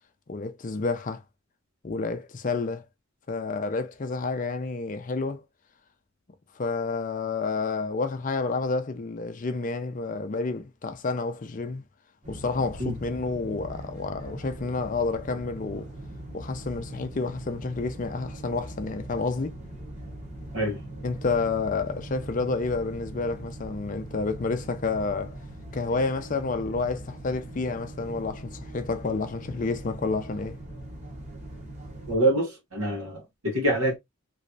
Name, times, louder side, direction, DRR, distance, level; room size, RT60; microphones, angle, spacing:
voice 1, 0.3-1.2 1.8-2.9 3.3-5.4 6.5-11.8 12.3-15.9 16.3-19.5 21.0-25.4 25.7-30.6, left 3 dB, 40° left, 0.5 m, -29 dB
sound 1, 12.2-32.2, right 1 dB, 35° right, 1.2 m, -41 dB
voice 2, 32.1-34.0, right 1 dB, 85° right, 1.8 m, -25 dB
3.1 x 3.1 x 2.6 m
head